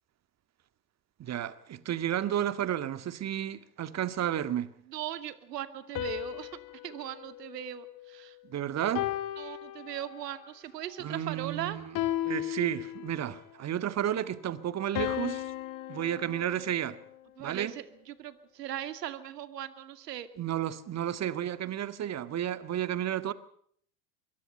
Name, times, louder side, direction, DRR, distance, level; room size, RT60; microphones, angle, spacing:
voice 1, 1.2-4.7 8.4-9.1 11.0-11.9 12.2-15.5 15.9-17.0 17.4-17.7 20.4-23.3, right 11 dB, 35° right, 1.9 m, -32 dB
voice 2, 4.9-8.4 9.4-11.8 17.4-20.3, right 11 dB, 75° right, 2.5 m, -39 dB
sound 1, 5.9-8.4 8.9-10.4 11.9-13.4 14.9-17.3, left 14 dB, 40° left, 2.1 m, -36 dB
26.0 x 23.0 x 5.4 m
hypercardioid pair, 90°, 48 cm